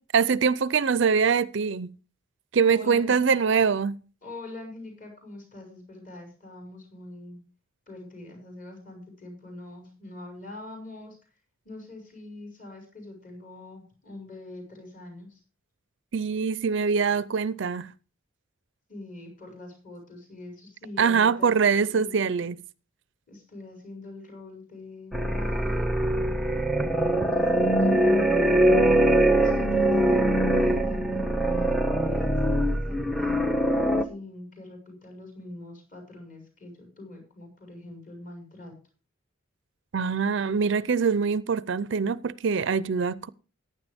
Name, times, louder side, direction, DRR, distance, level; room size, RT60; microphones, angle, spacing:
voice 1, 0.1-1.9 2.5-4.0 16.1-17.9 21.0-22.6 39.9-43.3, right 6 dB, 55° right, 0.4 m, -23 dB
voice 2, 2.6-3.3 4.2-7.4 7.9-11.3 11.6-15.4 18.9-22.2 23.3-29.1 29.4-33.7 34.0-38.7, left 2 dB, 40° left, 5.8 m, -44 dB
sound 1, 25.1-34.0, right 1 dB, ahead, 0.7 m, -22 dB
15.0 x 10.0 x 3.5 m
head